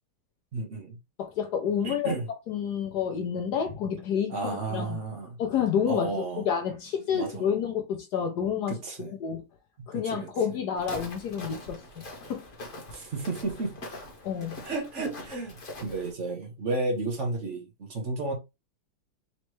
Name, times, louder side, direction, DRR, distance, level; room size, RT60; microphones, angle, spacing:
voice 1, 0.5-1.0 1.8-2.3 4.3-5.4 5.9-6.4 7.1-7.5 8.7-9.1 9.8-10.3 12.9-13.8 14.6-18.3, right 3 dB, 45° right, 1.2 m, -32 dB
voice 2, 1.2-2.1 2.5-5.0 5.4-8.8 9.1-9.4 9.9-11.8 12.3-12.5 14.2-14.6, left 7 dB, 65° left, 1.1 m, -29 dB
Walk footsteps, 10.8-16.1, left 1 dB, 30° left, 1.1 m, -43 dB
4.2 x 3.2 x 3.1 m
omnidirectional pair, 2.2 m